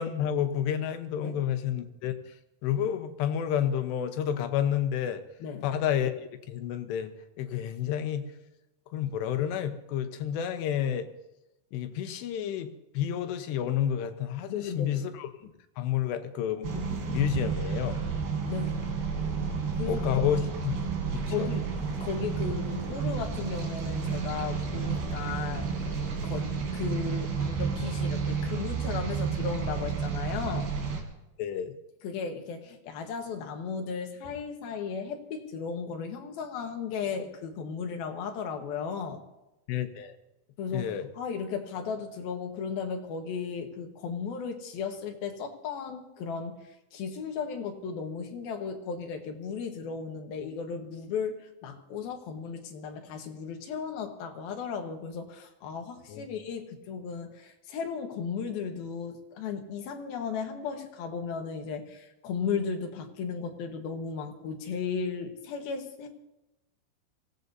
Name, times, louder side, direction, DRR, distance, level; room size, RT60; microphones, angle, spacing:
voice 1, 0.0-2.1 2.6-5.2 5.6-6.1 6.5-7.1 7.4-8.2 8.9-11.1 11.7-18.0 19.9-20.8 21.1-21.5 31.4-31.7 39.7-40.1 40.7-41.1 56.1-56.2, left 9 dB, 85° left, 8 dB, 3.2 m, -30 dB
voice 2, 14.5-15.0 18.5-18.8 19.8-20.1 21.3-21.7 22.0-25.7 26.2-30.7 32.0-39.2 40.6-66.1, left 6 dB, 70° left, 4 dB, 3.0 m, -35 dB
sound 1, 16.6-31.0, right 5 dB, 80° right, 4.8 m, -31 dB
25.0 x 17.0 x 2.7 m, 0.95 s
omnidirectional pair, 4.8 m